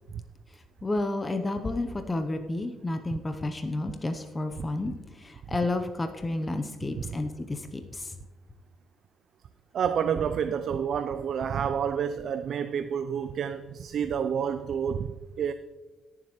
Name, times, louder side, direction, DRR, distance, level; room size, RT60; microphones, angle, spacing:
voice 1, 0.5-8.2, left 2 dB, 25° left, 0.7 m, -31 dB
voice 2, 9.7-15.5, right 7 dB, 60° right, 0.4 m, -29 dB
17.5 x 7.4 x 3.0 m
cardioid pair, 90°, 0 cm